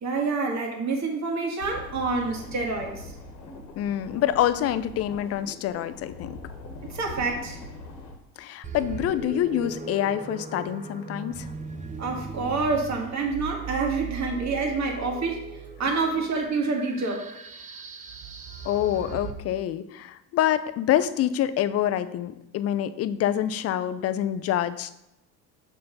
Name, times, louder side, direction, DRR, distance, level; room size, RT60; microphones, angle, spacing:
voice 1, 0.0-3.1 6.9-7.6 12.0-15.5 15.8-17.2, right 4 dB, 35° right, 0 dB, 2.0 m, -27 dB
sound 1, 1.6-8.2, left 3 dB, 85° left, 1.3 m, -42 dB
voice 2, 3.8-6.4 8.4-11.5 18.6-25.0, left 11 dB, 30° left, 13 dB, 0.5 m, -26 dB
sound 2, 8.6-19.3, right 5 dB, 15° right, 0.8 m, -38 dB
6.6 x 4.1 x 5.4 m, 0.84 s
hypercardioid pair, 75°, 49 cm